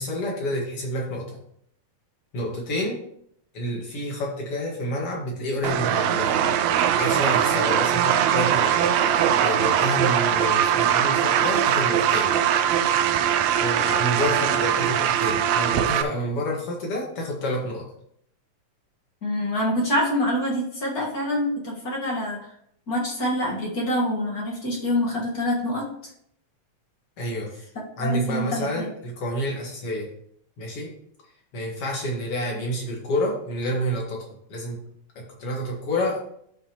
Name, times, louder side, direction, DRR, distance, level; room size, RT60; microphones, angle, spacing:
voice 1, 0.0-1.4 2.3-3.0 3.5-8.7 9.1-12.3 13.1-17.9 27.2-27.5 28.0-30.1 30.6-30.9 31.5-34.8 35.2-36.2, equal, 55° left, -1 dB, 2.7 m, -29 dB
sound 1, 5.6-16.0, right 9 dB, 75° right, 1.8 m, -21 dB
voice 2, 19.2-22.4 22.9-25.9 28.0-28.9, left 1 dB, 35° left, -2 dB, 1.9 m, -26 dB
12.5 x 5.7 x 3.1 m, 0.69 s
omnidirectional pair, 3.3 m